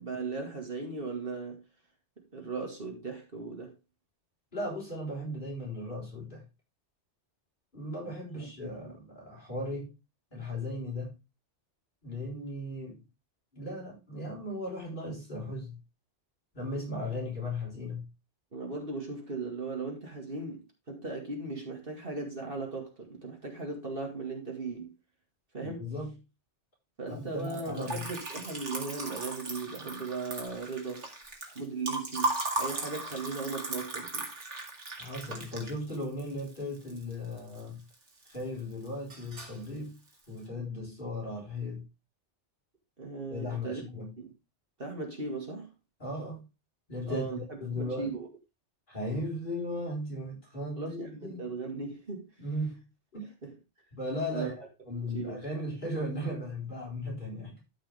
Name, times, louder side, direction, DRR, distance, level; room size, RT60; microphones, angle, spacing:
voice 1, 0.0-1.6 2.3-3.7 8.4-8.5 8.8-8.9 18.5-25.0 25.5-25.9 27.0-31.1 31.5-34.3 43.0-43.8 44.2-44.3 44.8-45.7 47.1-48.3 50.8-52.3 53.4-53.5 54.3-54.5 55.0-55.4, right 3 dB, 50° right, 2.5 m, -37 dB
voice 2, 4.5-6.4 7.7-9.9 10.3-11.2 12.0-13.0 13.5-15.8 16.5-18.1 25.6-26.1 27.1-28.1 35.0-37.8 38.2-40.0 40.3-41.8 43.3-44.1 46.0-46.4 46.9-48.2 48.9-51.5 52.4-52.9 53.1-53.3 53.9-57.6, left 1 dB, 45° left, 4.9 m, -37 dB
Liquid, 27.4-37.6 37.9-38.6 38.9-39.6, right 2 dB, 80° right, 2.4 m, -37 dB
13.0 x 5.4 x 3.5 m
omnidirectional pair, 1.2 m